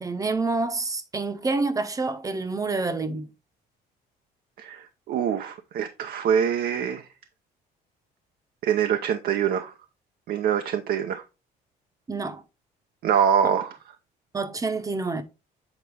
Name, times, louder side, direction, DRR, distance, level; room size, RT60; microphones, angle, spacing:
voice 1, 0.0-3.3 12.1-12.4 14.3-15.2, right 3 dB, 20° right, 0.9 m, -27 dB
voice 2, 4.6-7.1 8.6-9.7 10.3-11.2 13.0-13.8, right 8 dB, 65° right, 0.7 m, -24 dB
8.1 x 4.0 x 3.5 m
cardioid pair, 110°, 17 cm